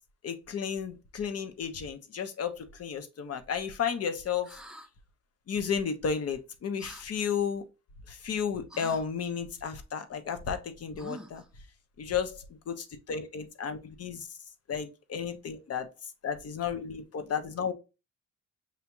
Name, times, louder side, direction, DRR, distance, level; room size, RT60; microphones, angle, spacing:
voice 1, 0.2-4.5 5.5-7.6 8.1-11.4 12.0-14.3 14.7-15.9 16.2-17.7, left 7 dB, 55° left, 1.0 m, -33 dB
sound 1, 4.4-4.9 6.8-7.1 8.7-9.0 11.0-11.5, right 1 dB, ahead, 0.6 m, -45 dB
6.6 x 2.9 x 2.3 m
cardioid pair, 90°, 30 cm